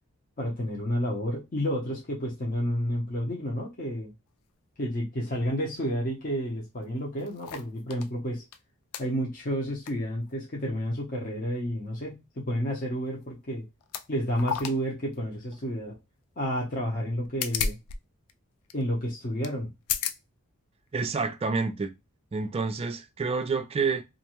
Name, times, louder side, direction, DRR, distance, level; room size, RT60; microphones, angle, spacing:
voice 1, 0.4-4.1 4.8-8.4 9.0-13.6 14.1-16.0 16.4-17.8 18.7-19.7, equal, 40° left, 0.8 m, -30 dB
sound 1, 6.4-6.5 6.8-8.1 8.5-8.6 8.9-9.1 9.6-10.0 10.3-10.4 13.1-13.2 13.8-14.1 14.3-14.8 15.1-15.2 17.0-18.0 18.2-18.3 18.7-18.8 19.4-19.5 19.8-20.2 20.9-21.0, left 7 dB, 85° left, 0.3 m, -33 dB
voice 2, 20.9-21.9 22.3-24.0, right 4 dB, 25° right, 0.3 m, -28 dB
2.5 x 2.2 x 2.9 m
head